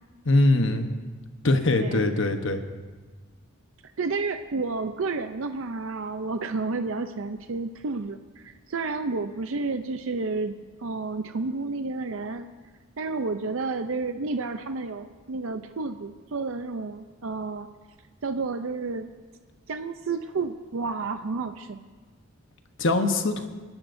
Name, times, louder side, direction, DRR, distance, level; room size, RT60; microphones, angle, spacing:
voice 1, 0.2-0.9 1.4-2.6 22.8-23.5, left 2 dB, 60° left, 6 dB, 1.0 m, -22 dB
voice 2, 4.0-10.5 10.8-12.5 13.0-17.7 18.2-19.1 19.7-21.8, right 3 dB, 70° right, 8 dB, 0.6 m, -31 dB
29.5 x 12.0 x 2.7 m, 1.4 s
head